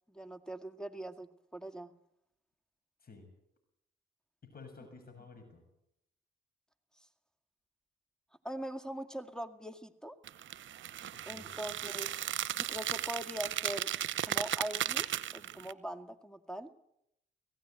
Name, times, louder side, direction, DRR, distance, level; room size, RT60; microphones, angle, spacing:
voice 1, 0.1-1.9 8.4-10.2 11.3-12.1 12.5-13.9 14.2-16.7, right 1 dB, 5° left, 9 dB, 2.1 m, -42 dB
voice 2, 3.0-3.3 4.4-5.6 11.1-11.8, left 4 dB, 45° left, 6 dB, 6.9 m, -53 dB
sound 1, 10.3-15.7, right 11 dB, 65° right, 0.9 m, -36 dB
18.5 x 16.5 x 9.1 m, 0.79 s
supercardioid pair, 50°, 21 cm